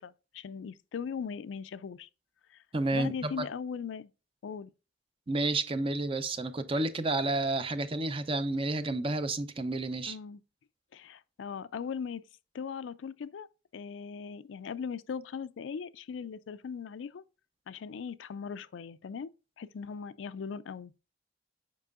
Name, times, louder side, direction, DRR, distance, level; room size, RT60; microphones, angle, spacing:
voice 1, 0.0-2.1 2.5-2.6 2.9-4.1 4.4-4.7 10.1-10.4 10.9-12.2 12.5-13.5 13.7-17.2 17.7-19.3 19.6-20.9, left 6 dB, 75° left, 0.4 m, -39 dB
voice 2, 2.7-3.4 5.3-10.2, right 2 dB, 30° right, 0.5 m, -30 dB
7.4 x 5.2 x 2.4 m
head